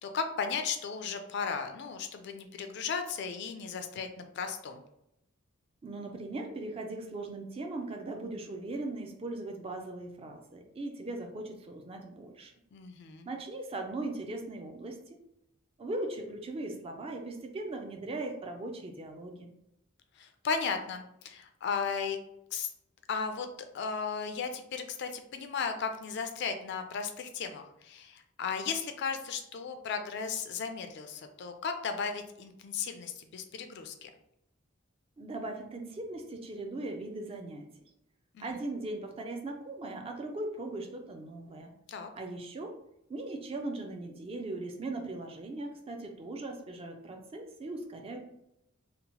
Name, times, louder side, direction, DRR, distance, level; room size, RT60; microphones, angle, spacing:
voice 1, 0.0-4.8 12.7-13.3 20.2-22.2 22.5-22.7 23.1-23.5 23.7-34.1 38.3-38.5 41.9-42.1, left 6 dB, 55° left, 6 dB, 0.3 m, -35 dB
voice 2, 5.8-12.5 13.3-15.2 15.8-19.5 35.2-37.7 38.4-41.7 42.1-42.8 43.1-48.2, right 2 dB, 30° right, 3 dB, 0.3 m, -39 dB
2.8 x 2.0 x 2.9 m, 0.80 s
head